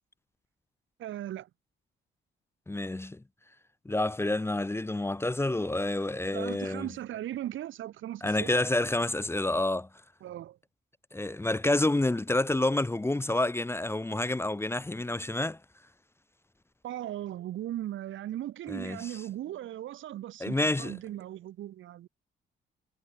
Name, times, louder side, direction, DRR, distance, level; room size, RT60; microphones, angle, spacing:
voice 1, 1.0-1.5 6.3-8.6 10.2-10.6 16.8-22.1, right 12 dB, 75° right, 3.7 m, -38 dB
voice 2, 2.7-3.2 3.8-6.9 8.2-9.9 11.1-15.6 18.7-19.1 20.4-20.9, left 2 dB, 10° left, 1.2 m, -28 dB
cardioid pair, 90°, 20 cm